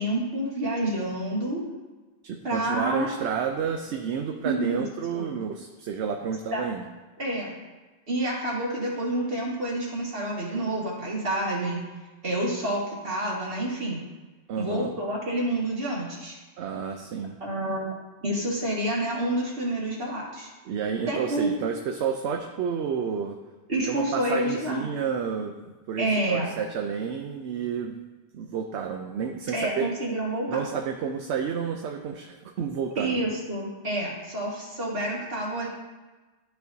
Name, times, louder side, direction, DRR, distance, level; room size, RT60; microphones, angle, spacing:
voice 1, 0.0-1.6 2.4-3.1 4.4-4.8 5.1-5.3 6.5-6.6 7.2-7.5 8.1-11.8 12.2-14.0 14.6-16.4 17.4-17.9 18.2-20.5 21.1-21.6 23.7-24.9 26.0-26.5 29.5-30.6 33.0-35.7, right 1 dB, 55° right, -4 dB, 2.0 m, -28 dB
voice 2, 2.2-6.9 14.5-14.9 16.6-17.4 20.7-23.4 23.9-28.0 28.3-29.9 30.5-33.2, right 7 dB, 75° right, 4 dB, 0.9 m, -30 dB
12.5 x 4.5 x 2.7 m, 1.2 s
omnidirectional pair, 1.2 m